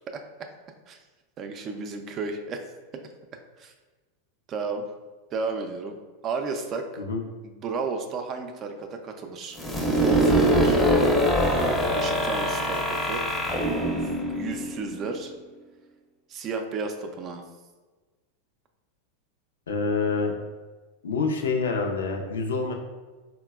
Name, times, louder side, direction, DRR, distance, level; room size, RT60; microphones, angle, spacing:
voice 1, 1.4-2.6 2.9-3.0 3.6-3.7 4.5-4.9 5.3-6.0 6.2-6.9 7.4-9.6 9.9-10.8 11.9-13.2 14.0-15.3 16.3-17.4, right 4 dB, 40° right, 5 dB, 0.4 m, -33 dB
sound 1, 9.6-15.3, equal, 10° left, 0.6 m, -23 dB
voice 2, 19.7-20.3 21.0-22.7, left 4 dB, 85° left, 2 dB, 0.4 m, -26 dB
3.8 x 2.1 x 2.3 m, 1.3 s
hypercardioid pair, 100°, 0 cm